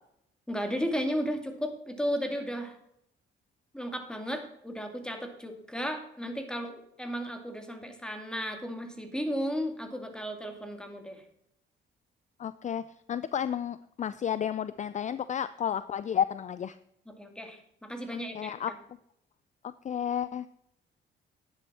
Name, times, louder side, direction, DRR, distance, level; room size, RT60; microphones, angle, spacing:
voice 1, 0.5-2.8 3.7-11.2 17.2-18.5, equal, 5° left, 5 dB, 2.3 m, -34 dB
voice 2, 12.4-12.8 13.1-16.8 18.1-18.7 19.8-20.5, left 9 dB, 35° left, 15 dB, 0.4 m, -32 dB
10.5 x 10.0 x 4.3 m, 0.76 s
cardioid pair, 90°, 20 cm